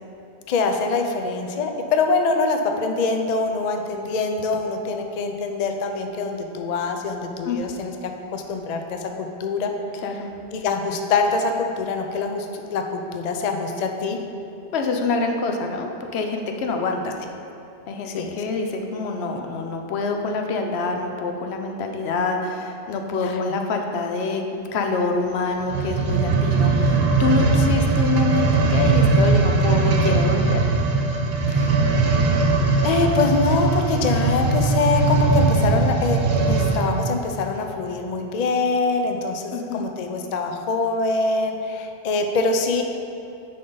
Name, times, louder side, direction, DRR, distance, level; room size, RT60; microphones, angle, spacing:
voice 1, 0.5-9.7 10.5-14.2 18.0-18.4 23.1-23.5 31.5-32.2 32.8-42.8, left 3 dB, 50° left, 4 dB, 0.5 m, -24 dB
voice 2, 14.7-17.2 17.9-30.6 39.5-39.9, left 3 dB, 75° left, 3 dB, 0.9 m, -26 dB
sound 1, 25.6-36.9 37.6-37.7, right 3 dB, 65° right, 0.8 m, -20 dB
9.9 x 3.9 x 3.9 m, 2.7 s
omnidirectional pair, 1.1 m